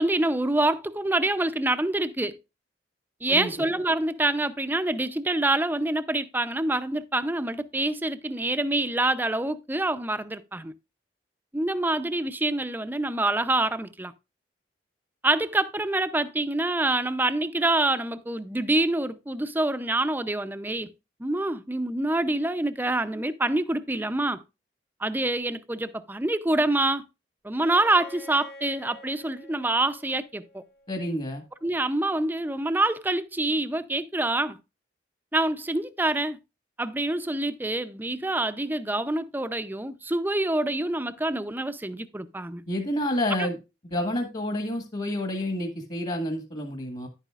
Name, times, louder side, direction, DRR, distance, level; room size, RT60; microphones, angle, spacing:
voice 1, 0.0-2.4 3.2-10.7 11.5-14.1 15.2-20.9 21.2-24.4 25.0-27.0 27.4-30.6 31.6-34.6 35.3-36.4 36.8-42.6 43.4-43.5, right 2 dB, 10° right, 0.5 m, -26 dB
Bowed string instrument, 27.5-31.3, left 1 dB, 65° left, 2.3 m, -48 dB
voice 2, 30.9-31.4 42.7-43.6 43.9-47.1, left 1 dB, 40° left, 1.5 m, -29 dB
10.5 x 9.0 x 2.4 m
head